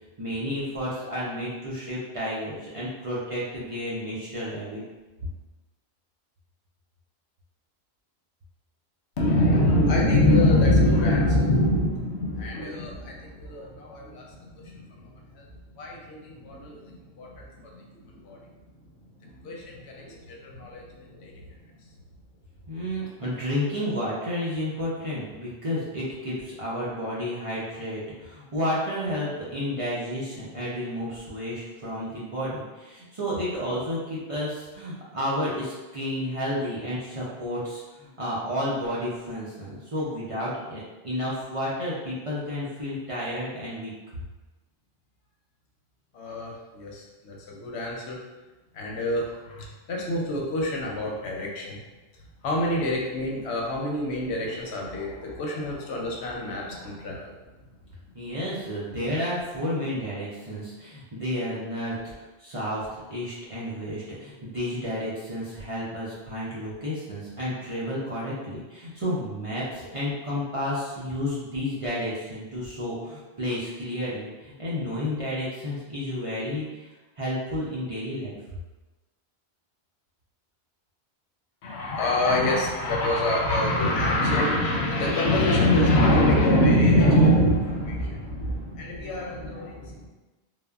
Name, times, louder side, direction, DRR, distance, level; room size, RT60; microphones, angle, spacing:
voice 1, 0.2-4.8 22.7-43.9 58.1-62.1 62.4-76.9 77.2-78.4, equal, 45° right, -8 dB, 0.5 m, -31 dB
voice 2, 9.2-15.5 15.7-18.4 19.2-21.4 46.1-48.2 48.7-51.8 52.4-57.3 81.6-90.1, left 1 dB, 90° left, -1 dB, 0.9 m, -25 dB
3.3 x 2.0 x 2.3 m, 1.2 s
omnidirectional pair, 1.1 m